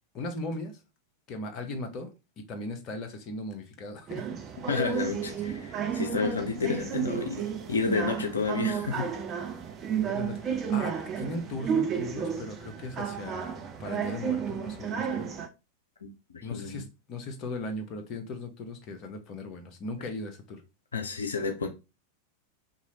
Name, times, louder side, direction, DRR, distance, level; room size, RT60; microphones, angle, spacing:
voice 1, 0.1-0.7 1.3-2.1 2.4-4.2 10.1-15.3 16.4-20.6, left 2 dB, 35° left, 0.8 m, -38 dB
sound 1, 4.1-15.5, right 7 dB, 30° right, 0.5 m, -32 dB
voice 2, 4.7-9.1 16.0-16.8 20.9-21.7, left 5 dB, 70° left, 0.5 m, -31 dB
2.9 x 2.7 x 2.8 m
figure-of-eight pair, 90°, 0 cm